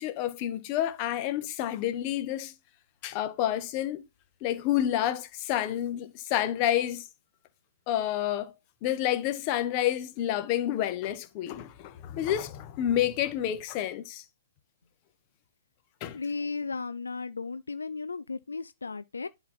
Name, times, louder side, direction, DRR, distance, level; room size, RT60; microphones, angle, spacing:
voice 1, 0.0-2.5 3.0-4.0 4.4-7.1 7.9-8.5 8.8-14.2 16.0-16.2, left 12 dB, 30° left, 1.2 m, -29 dB
voice 2, 16.1-19.3, left 4 dB, 75° left, 0.4 m, -35 dB
11.0 x 4.0 x 4.2 m
figure-of-eight pair, 125°, 0 cm